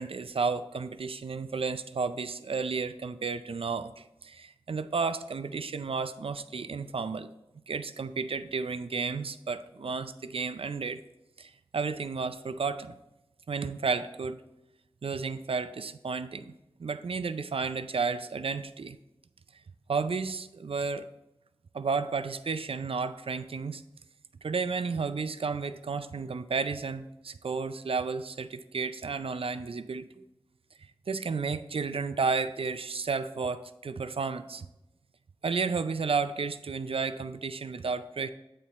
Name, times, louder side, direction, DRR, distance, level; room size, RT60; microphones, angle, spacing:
voice 1, 0.0-7.3 7.7-11.0 11.4-13.0 13.5-14.4 15.0-16.5 16.8-19.0 19.9-21.1 21.7-23.8 24.4-30.2 31.1-34.7 35.4-38.3, right 4 dB, 70° right, 11 dB, 0.4 m, -32 dB
8.5 x 4.4 x 4.0 m, 0.93 s
wide cardioid pair, 55°, 10 cm